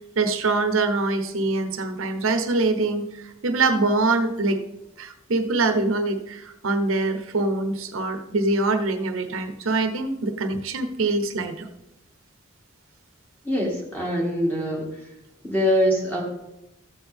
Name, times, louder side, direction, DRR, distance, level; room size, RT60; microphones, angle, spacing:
voice 1, 0.2-4.6 5.0-11.7, right 3 dB, 80° right, 8 dB, 0.9 m, -24 dB
voice 2, 13.4-14.9 15.4-16.2, equal, 10° left, -2 dB, 1.9 m, -23 dB
14.0 x 8.1 x 3.5 m, 0.91 s
head